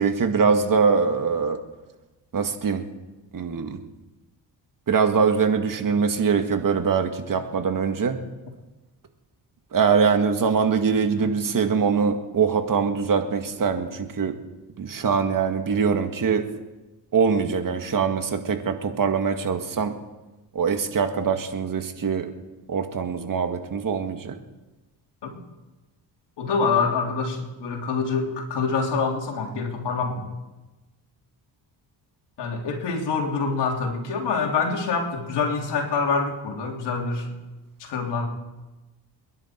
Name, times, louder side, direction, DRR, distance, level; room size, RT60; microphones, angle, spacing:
voice 1, 0.0-1.6 2.3-2.8 3.3-3.8 4.9-8.2 9.7-14.4 14.8-16.5 17.1-19.9 20.5-22.3 22.7-24.4, right 6 dB, 50° right, 6 dB, 2.0 m, -23 dB
voice 2, 26.4-30.2 32.4-37.3 37.8-38.3, left 4 dB, 80° left, 1 dB, 3.3 m, -26 dB
29.0 x 11.0 x 4.6 m, 1.1 s
cardioid pair, 80°, 41 cm